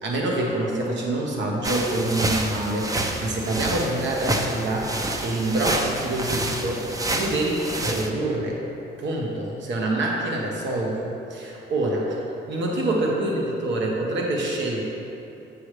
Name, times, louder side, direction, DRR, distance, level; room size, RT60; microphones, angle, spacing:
voice 1, 0.0-8.6 9.0-12.2 12.5-14.8, right 1 dB, 65° right, -1 dB, 1.1 m, -26 dB
sound 1, 1.6-8.1, right 1 dB, 15° right, 0.6 m, -28 dB
7.5 x 6.9 x 3.3 m, 2.9 s
cardioid pair, 90°, 20 cm